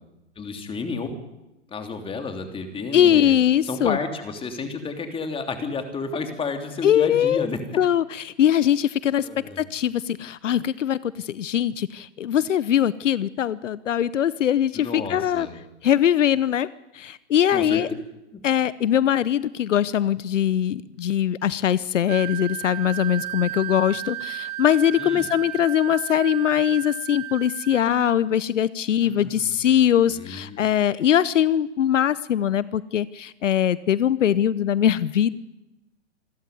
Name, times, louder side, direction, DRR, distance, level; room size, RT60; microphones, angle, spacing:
voice 1, 0.4-1.1 1.7-3.3 3.6-7.8 9.2-9.6 14.7-15.6 17.5-18.0 18.3-18.4 25.0-25.3 29.0-29.5 30.1-30.7, left 4 dB, 15° left, 6 dB, 3.2 m, -31 dB
voice 2, 2.9-4.0 6.8-7.5 7.8-15.5 15.8-16.7 16.9-17.9 18.4-35.3, left 10 dB, 80° left, 19 dB, 0.9 m, -21 dB
Wind instrument woodwind instrument, 22.1-28.2, right 16 dB, 35° right, 1.3 m, -34 dB
27.0 x 13.0 x 9.4 m, 0.94 s
hypercardioid pair, 130°, 37 cm